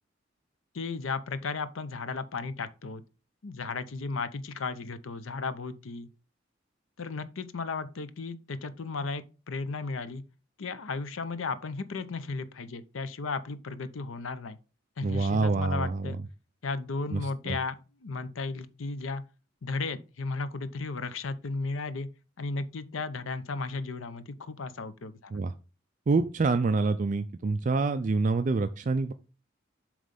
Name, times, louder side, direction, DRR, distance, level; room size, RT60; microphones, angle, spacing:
voice 1, 0.7-3.0 3.4-6.1 7.0-10.2 10.6-14.6 15.0-16.2 16.6-19.2 19.6-22.1 22.4-25.4, left 4 dB, 90° left, 0.7 m, -35 dB
voice 2, 15.0-16.2 17.1-17.2 17.5-17.6 25.3-25.5 26.1-29.1, right 3 dB, 40° right, 0.4 m, -26 dB
7.5 x 3.2 x 5.2 m
head